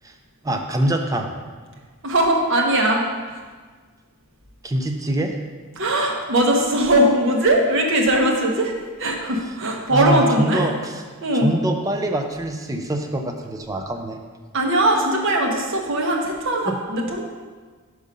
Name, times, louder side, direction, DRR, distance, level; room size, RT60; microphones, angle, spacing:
voice 1, 0.4-1.3 4.6-5.3 9.9-11.0 11.4-14.2 15.0-15.1 16.7-16.8, right 1 dB, 15° right, 4 dB, 0.4 m, -24 dB
voice 2, 2.0-3.1 5.8-8.7 9.0-10.7 11.2-11.5 14.5-17.2, right 1 dB, 60° right, 1 dB, 0.9 m, -20 dB
5.3 x 4.8 x 5.2 m, 1.5 s
head